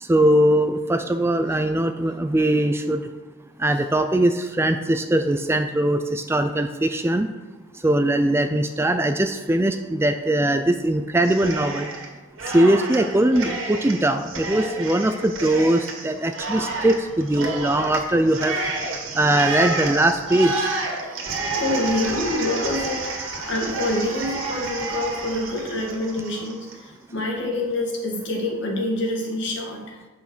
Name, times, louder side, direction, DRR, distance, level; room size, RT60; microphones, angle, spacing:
voice 1, 0.0-3.0 3.6-7.3 7.8-11.9 12.5-18.6 19.1-20.7, right 1 dB, 10° right, 7 dB, 0.4 m, -21 dB
Cheering, 11.2-12.1 12.4-26.8, right 3 dB, 75° right, 2.0 m, -30 dB
voice 2, 21.4-23.1 23.5-26.7 27.1-29.8, left 1 dB, 60° left, 0 dB, 2.0 m, -26 dB
8.8 x 5.7 x 6.2 m, 1.3 s
head